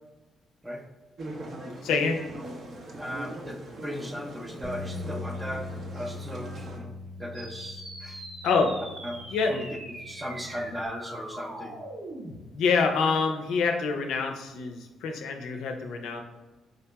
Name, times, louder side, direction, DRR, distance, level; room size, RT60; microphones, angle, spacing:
sound 1, 1.2-6.8, right 1 dB, 55° right, 0.6 m, -41 dB
voice 1, 1.8-2.2 8.4-8.8 9.3-9.6 12.5-16.2, left 4 dB, 85° left, 4 dB, 0.4 m, -26 dB
voice 2, 3.0-6.9 7.2-8.2 9.0-9.2 9.5-9.6 10.0-11.8, equal, 15° right, 3 dB, 0.5 m, -37 dB
sound 2, 4.6-10.9, left 3 dB, 25° left, 0.8 m, -41 dB
sound 3, 7.3-12.4, right 1 dB, 85° right, 1.3 m, -42 dB
5.0 x 2.8 x 2.2 m, 1.1 s
cardioid pair, 90°, 0 cm